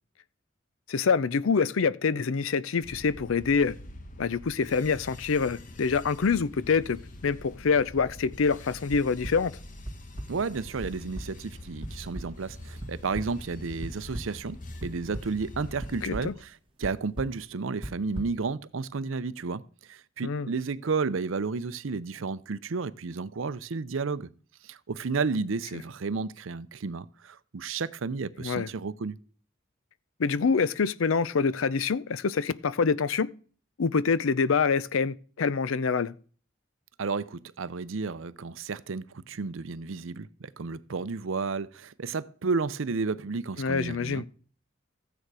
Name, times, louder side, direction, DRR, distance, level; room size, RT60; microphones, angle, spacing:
voice 1, 0.9-3.8 4.2-9.6 16.0-16.3 20.2-20.5 28.4-28.7 30.2-33.3 33.8-36.1 43.6-44.2, left 5 dB, 90° left, 0.5 m, -26 dB
sound 1, 2.8-16.4, left 1 dB, 40° left, 1.0 m, -45 dB
sound 2, 8.9-9.3 9.8-10.3 10.8-10.9 11.1-11.2 11.8-11.9 12.1-12.2 12.8-13.2 13.8-14.2 14.8-15.3 15.8-16.2 16.8-16.9 17.2-17.3 17.8-18.2, right 1 dB, 25° right, 1.7 m, -35 dB
voice 2, 10.3-24.3 24.6-29.2 37.0-44.2, right 4 dB, 80° right, 0.6 m, -32 dB
14.0 x 9.0 x 4.8 m
head